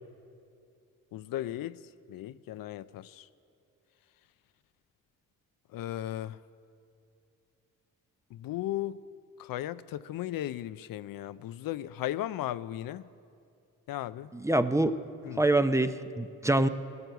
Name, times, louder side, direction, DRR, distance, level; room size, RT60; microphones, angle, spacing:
voice 1, 1.1-1.8 2.1-3.3 5.7-6.4 8.3-9.0 9.4-13.0 13.9-14.3 15.2-15.4, left 13 dB, 75° left, 15 dB, 0.5 m, -36 dB
voice 2, 14.3-14.9 15.4-16.7, right 2 dB, 10° right, 10 dB, 0.6 m, -25 dB
17.0 x 11.0 x 8.0 m, 2.5 s
cardioid pair, 85°, 35 cm